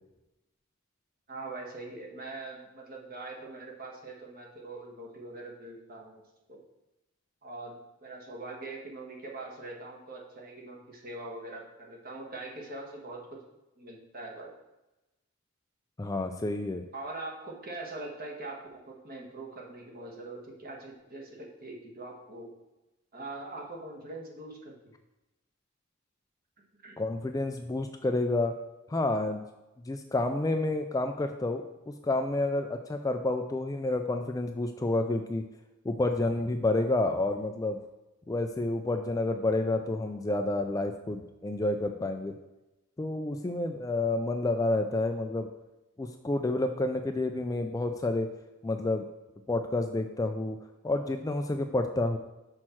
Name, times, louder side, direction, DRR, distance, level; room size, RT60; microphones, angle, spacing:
voice 1, 1.3-6.2 6.5-6.6 7.4-13.4 13.8-14.5 16.9-22.5 23.1-24.7 26.8-27.0, right 2 dB, 45° right, -1 dB, 1.5 m, -42 dB
voice 2, 16.0-16.8 27.0-28.6 28.9-29.4 29.9-35.4 35.8-37.8 38.3-42.3 43.0-45.5 46.0-48.3 48.6-49.0 49.5-50.6 50.8-52.2, left 2 dB, 15° left, 6 dB, 0.3 m, -29 dB
6.2 x 4.4 x 6.0 m, 0.98 s
head